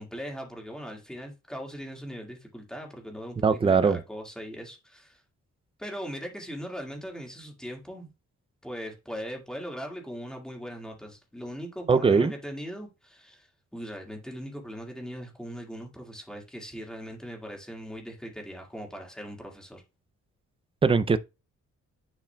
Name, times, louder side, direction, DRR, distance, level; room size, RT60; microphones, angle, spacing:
voice 1, 0.0-5.2 5.8-8.1 8.6-13.5 13.7-19.8, equal, ahead, 1.8 m, -39 dB
voice 2, 3.4-4.0 11.9-12.3 20.8-21.2, right 5 dB, 20° right, 0.4 m, -21 dB
10.5 x 4.8 x 2.2 m
wide cardioid pair, 180°, 29 cm